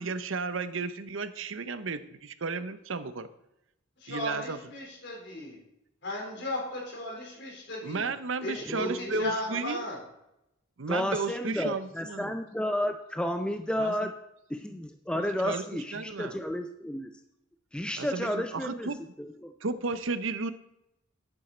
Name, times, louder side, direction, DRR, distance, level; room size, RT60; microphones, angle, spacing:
voice 1, 0.0-3.3 4.1-4.6 7.8-9.8 10.8-12.3 13.8-13.9 15.1-16.4 18.0-19.0 19.6-20.5, right 4 dB, 70° right, 13 dB, 0.7 m, -33 dB
voice 2, 4.0-5.6 6.0-8.1 8.4-10.0, left 1 dB, 60° left, -1 dB, 3.8 m, -36 dB
voice 3, 8.6-9.2 10.9-14.1 14.5-17.1 17.7-18.9 19.2-19.5, left 1 dB, 5° left, 6 dB, 0.4 m, -32 dB
11.0 x 8.9 x 4.4 m, 0.84 s
head